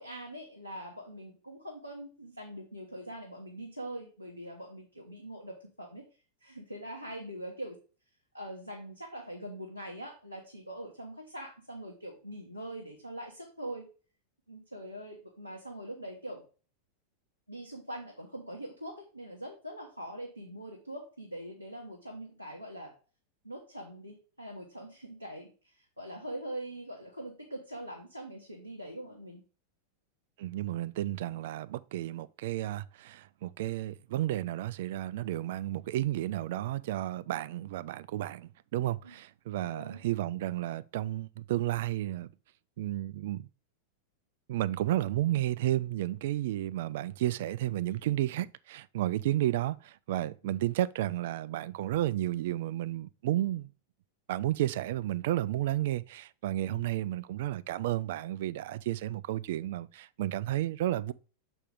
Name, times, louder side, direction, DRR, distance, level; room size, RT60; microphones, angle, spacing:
voice 1, 0.0-6.0 6.4-7.8 8.3-13.9 14.5-16.4 17.5-22.9 23.4-29.4 39.0-39.1 39.5-40.0 48.0-48.1 56.7-56.9, right 1 dB, 90° left, 1.2 m, -43 dB
voice 2, 30.4-42.3 42.8-43.5 44.5-53.7 54.3-61.1, right 14 dB, 55° right, 0.3 m, -32 dB
6.5 x 5.0 x 3.7 m
figure-of-eight pair, 90°, 0 cm